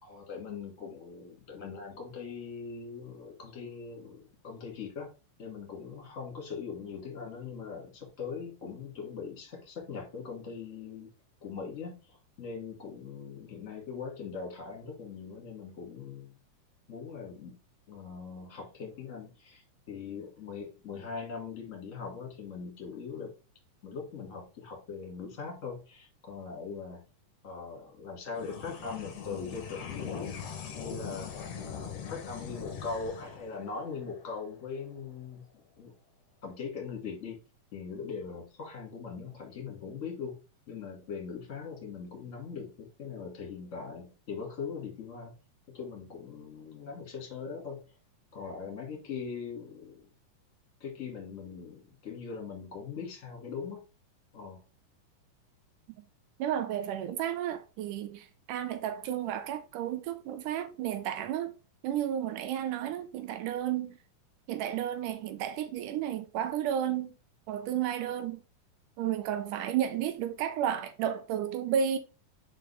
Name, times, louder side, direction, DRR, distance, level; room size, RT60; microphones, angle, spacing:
voice 1, 0.0-5.1 5.4-11.1 11.4-16.3 16.9-17.6 17.9-23.3 23.8-27.0 27.4-30.2 30.7-31.3 31.6-35.4 35.8-35.9 36.4-37.4 37.7-40.3 40.7-45.3 45.7-47.8 48.3-50.1 50.8-53.8 54.3-54.6, left 5 dB, 25° left, 1.9 m, -41 dB
sound 1, 28.3-35.0, left 7 dB, 60° left, 1.8 m, -41 dB
voice 2, 56.4-61.5 61.8-64.0 64.5-67.1 67.5-68.4 69.0-72.0, right 10 dB, 80° right, 2.1 m, -32 dB
5.9 x 4.7 x 3.4 m
omnidirectional pair, 4.0 m